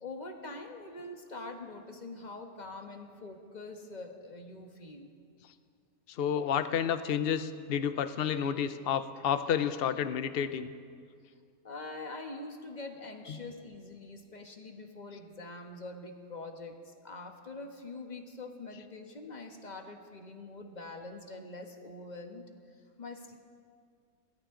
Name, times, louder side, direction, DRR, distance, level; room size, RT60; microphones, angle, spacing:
voice 1, 0.0-5.1 11.6-22.4 23.0-23.3, left 2 dB, 30° left, 4 dB, 1.4 m, -44 dB
voice 2, 6.1-10.7 13.3-13.4, left 8 dB, 55° left, 11 dB, 0.7 m, -30 dB
21.5 x 17.0 x 3.8 m, 2.2 s
omnidirectional pair, 1.6 m